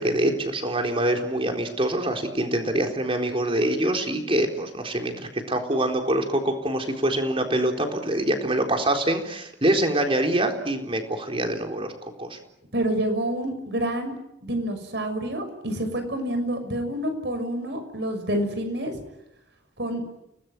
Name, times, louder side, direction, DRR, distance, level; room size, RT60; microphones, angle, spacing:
voice 1, 0.0-11.9 12.2-12.4, right 1 dB, 30° right, 4 dB, 4.1 m, -25 dB
voice 2, 12.7-14.1 14.4-18.9 19.8-20.0, right 1 dB, 70° right, 8 dB, 6.3 m, -28 dB
30.0 x 20.0 x 9.3 m, 0.88 s
head